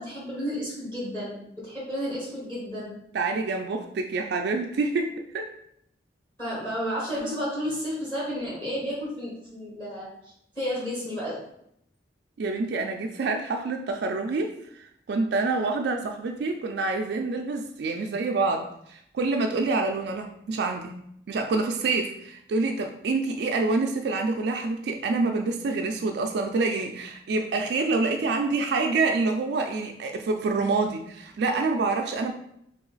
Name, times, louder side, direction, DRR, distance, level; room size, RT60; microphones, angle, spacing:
voice 1, 0.0-2.9 6.4-10.1 10.5-11.4, equal, 15° left, -7 dB, 1.0 m, -32 dB
voice 2, 3.1-5.5 12.4-21.0 21.3-32.3, right 3 dB, 65° right, 3 dB, 0.3 m, -27 dB
3.2 x 3.0 x 3.9 m, 0.74 s
head